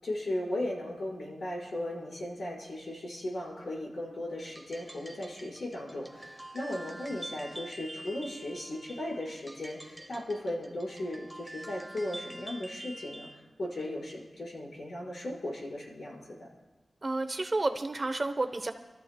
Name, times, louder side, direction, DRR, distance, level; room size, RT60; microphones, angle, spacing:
voice 1, 0.0-13.3 13.6-16.5, left 1 dB, 80° left, -5 dB, 5.2 m, -37 dB
sound 1, 4.4-13.4, right 1 dB, 10° right, 1.0 m, -46 dB
voice 2, 17.0-18.7, right 2 dB, 40° right, 8 dB, 0.9 m, -30 dB
28.5 x 13.5 x 2.3 m, 1.2 s
wide cardioid pair, 95°, 0 cm